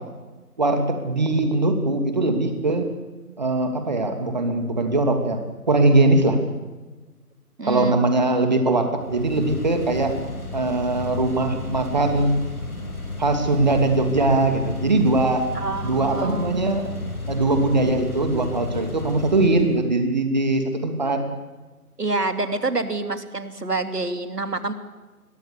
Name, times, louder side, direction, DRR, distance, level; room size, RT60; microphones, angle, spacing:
voice 1, 0.6-2.9 3.4-5.4 5.7-6.4 7.7-10.1 10.5-12.3 13.2-15.4 15.8-16.9 17.3-21.2, right 2 dB, 30° right, 5 dB, 2.7 m, -21 dB
voice 2, 7.6-8.0 15.5-16.8 22.0-24.7, right 2 dB, 90° right, 8 dB, 3.1 m, -27 dB
sound 1, 9.0-19.8, left 2 dB, 70° left, 7.5 m, -33 dB
29.0 x 22.5 x 7.0 m, 1.2 s
figure-of-eight pair, 170°, 46 cm